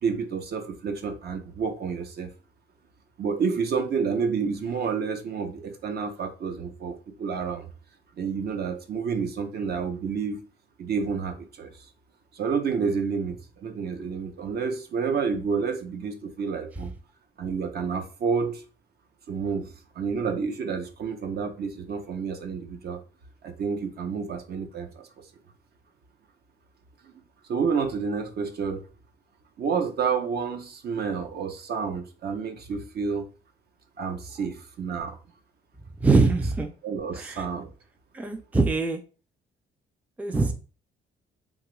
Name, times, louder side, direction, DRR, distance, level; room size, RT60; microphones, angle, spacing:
voice 1, 0.0-2.3 3.2-7.7 8.2-10.4 10.8-11.7 12.3-16.9 17.4-18.6 19.3-23.0 23.4-25.1 27.0-27.1 27.5-28.8 29.6-33.2 34.0-35.2 36.8-37.7, right 5 dB, 55° right, 0.6 m, -29 dB
voice 2, 36.0-36.7 37.1-37.5 38.1-39.0 40.2-40.5, right 3 dB, 5° right, 0.4 m, -23 dB
3.0 x 2.3 x 3.0 m
cardioid pair, 90°, 20 cm